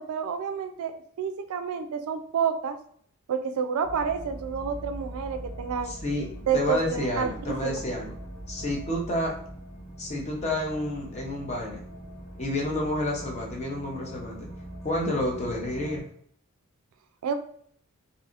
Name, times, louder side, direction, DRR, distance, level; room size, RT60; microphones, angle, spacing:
voice 1, 0.0-2.8 3.3-5.9 6.5-7.3 7.6-7.8 17.2-17.3, right 7 dB, 70° right, 7 dB, 0.3 m, -29 dB
sound 1, 3.8-16.0, right 1 dB, 80° left, 1.3 m, -41 dB
voice 2, 5.8-6.3 6.5-8.1 8.5-9.3 10.0-11.8 12.4-14.5 14.8-16.0, left 1 dB, 30° left, -1 dB, 0.6 m, -29 dB
2.6 x 2.6 x 2.4 m, 0.62 s
head